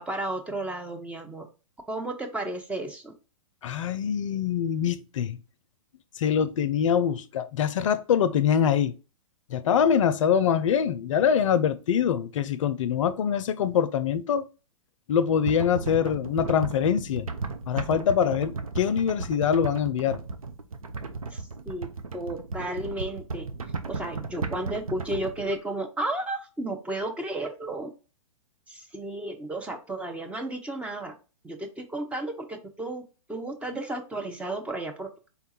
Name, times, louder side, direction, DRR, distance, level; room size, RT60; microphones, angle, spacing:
voice 1, 0.0-1.5 1.9-3.1 21.3-23.5 23.9-27.9 28.7-31.1 31.4-33.0 33.3-35.3, right 1 dB, 5° right, 0.5 m, -33 dB
voice 2, 3.6-5.4 6.2-8.9 9.5-14.4 15.1-17.3 17.7-20.2, left 8 dB, 65° left, 0.5 m, -24 dB
sound 1, 15.4-25.5, right 4 dB, 90° right, 0.6 m, -35 dB
4.0 x 2.3 x 4.1 m
hypercardioid pair, 120°, 18 cm